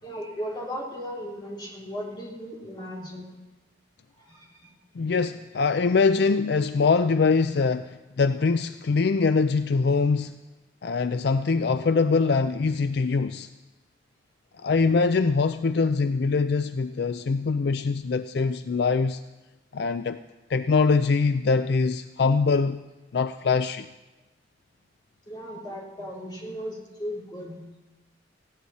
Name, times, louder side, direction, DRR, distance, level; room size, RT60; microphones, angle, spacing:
voice 1, 0.0-3.4 4.2-4.7 25.3-27.6, equal, 25° left, 3.5 m, -36 dB
voice 2, 5.0-10.4 10.8-13.5 14.6-19.2 19.7-20.2 20.5-22.8 23.1-23.9, left 4 dB, 60° left, 0.4 m, -23 dB
19.5 x 16.0 x 4.2 m
head